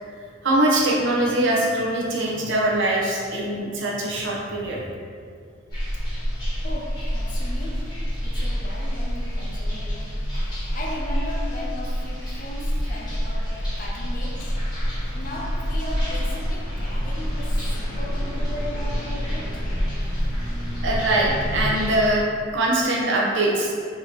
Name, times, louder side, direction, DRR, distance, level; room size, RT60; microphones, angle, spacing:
voice 1, 0.4-4.8 20.8-22.2 22.5-23.8, right 1 dB, 65° right, -4 dB, 0.7 m, -22 dB
sound 1, 5.7-22.1, equal, 20° left, 1.0 m, -27 dB
voice 2, 6.6-10.1 10.7-14.7 15.1-19.8, left 1 dB, 40° left, -3 dB, 0.6 m, -37 dB
3.6 x 2.9 x 2.8 m, 2.2 s
head